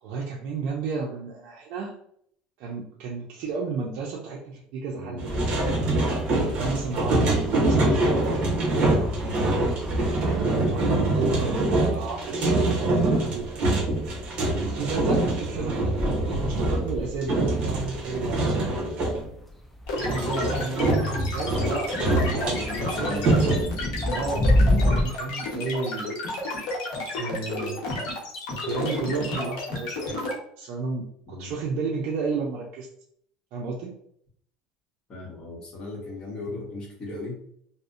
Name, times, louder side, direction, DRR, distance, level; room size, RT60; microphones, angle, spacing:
voice 1, 0.0-2.0 2.6-5.9 6.6-9.4 10.4-12.8 13.1-13.5 14.6-15.9 16.4-18.8 19.9-21.9 22.3-23.6 24.1-26.2 27.1-27.9 28.6-30.2 30.6-32.9 33.5-33.9, right 4 dB, 60° right, -2 dB, 0.4 m, -32 dB
sound 1, 5.2-19.2 19.9-23.6, right 2 dB, 45° right, 0.8 m, -25 dB
sound 2, 5.3-25.1, left 1 dB, 5° left, 0.3 m, -32 dB
sound 3, 19.9-30.3, left 2 dB, 70° left, 0.8 m, -31 dB
voice 2, 22.5-23.3 31.3-31.5 35.1-37.4, left 2 dB, 30° left, -2 dB, 0.9 m, -37 dB
2.6 x 2.0 x 2.4 m, 0.67 s
cardioid pair, 135°, 3 cm